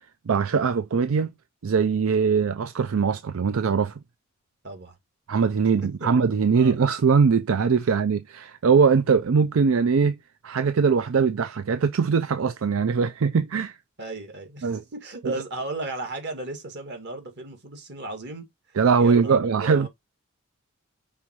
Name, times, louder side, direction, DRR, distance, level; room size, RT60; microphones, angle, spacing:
voice 1, 0.3-1.3 1.6-3.9 5.3-10.1 10.4-13.8 14.6-14.8 15.2-15.4 18.8-19.9, right 5 dB, 75° right, 0.5 m, -21 dB
voice 2, 4.6-5.0 6.0-6.1 6.6-6.8 14.0-18.4 19.0-19.9, right 2 dB, 55° right, 2.1 m, -35 dB
5.6 x 3.8 x 4.6 m
head